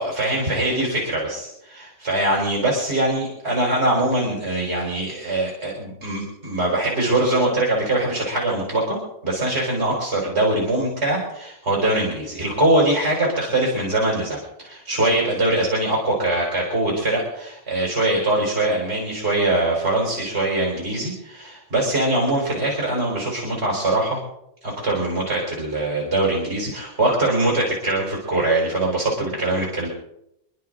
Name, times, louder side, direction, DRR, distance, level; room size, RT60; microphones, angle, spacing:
voice 1, 0.0-9.0 9.2-24.2 24.6-29.9, right 1 dB, 65° right, -3 dB, 4.8 m, -22 dB
27.0 x 11.0 x 3.9 m, 0.79 s
omnidirectional pair, 1.2 m